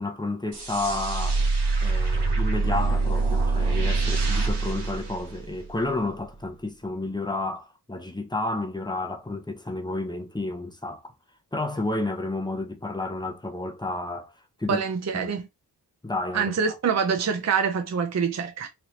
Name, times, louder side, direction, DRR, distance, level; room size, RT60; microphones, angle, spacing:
voice 1, 0.0-1.4 1.8-11.1 11.5-14.3 14.6-14.8 15.1-15.2 16.0-16.5, left 2 dB, 10° left, 0.7 m, -31 dB
sound 1, 0.5-5.9, right 3 dB, 75° right, 1.2 m, -25 dB
voice 2, 14.7-15.5 16.3-18.7, right 6 dB, 40° right, 0.5 m, -25 dB
3.3 x 2.5 x 2.8 m
wide cardioid pair, 60°, 40 cm